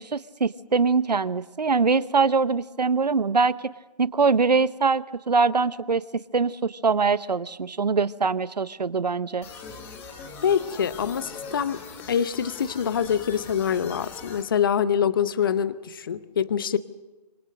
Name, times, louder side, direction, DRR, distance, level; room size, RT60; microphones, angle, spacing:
voice 1, 0.0-3.7 4.0-9.5, right 4 dB, 80° right, 17 dB, 1.0 m, -23 dB
sound 1, 9.4-14.4, left 4 dB, 10° left, 1.3 m, -41 dB
voice 2, 10.4-11.8 12.1-16.8, left 8 dB, 30° left, 15 dB, 0.7 m, -25 dB
26.0 x 25.0 x 6.4 m, 1.1 s
figure-of-eight pair, 160°, 21 cm